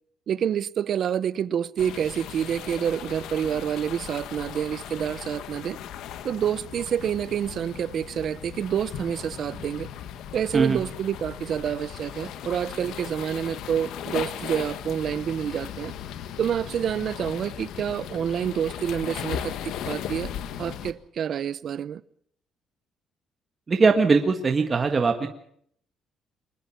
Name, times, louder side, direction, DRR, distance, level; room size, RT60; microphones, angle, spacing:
voice 1, 0.3-5.8 6.2-9.9 10.3-15.9 16.4-20.3 20.6-22.0, right 8 dB, 45° right, 0.8 m, -28 dB
sound 1, 1.8-20.9, left 10 dB, 80° left, 1.6 m, -37 dB
voice 2, 23.7-25.3, right 4 dB, 25° right, 1.6 m, -20 dB
24.0 x 20.0 x 5.9 m
cardioid pair, 170°, 0 cm